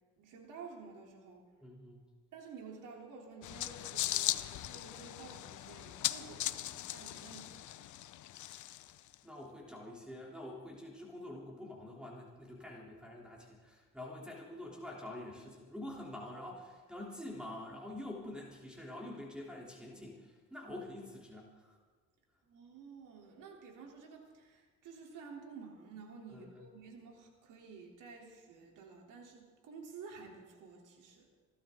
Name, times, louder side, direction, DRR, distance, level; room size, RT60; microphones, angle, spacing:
voice 1, 0.2-1.5 2.3-7.9 22.4-31.3, right 5 dB, 80° right, 0 dB, 3.5 m, -52 dB
voice 2, 1.6-2.0 9.2-21.8 26.3-26.6, left 1 dB, 5° right, -3 dB, 3.3 m, -46 dB
sound 1, 3.4-9.1, left 14 dB, 70° left, 0.7 m, -38 dB
27.5 x 12.5 x 3.8 m, 1.4 s
cardioid pair, 85°, 31 cm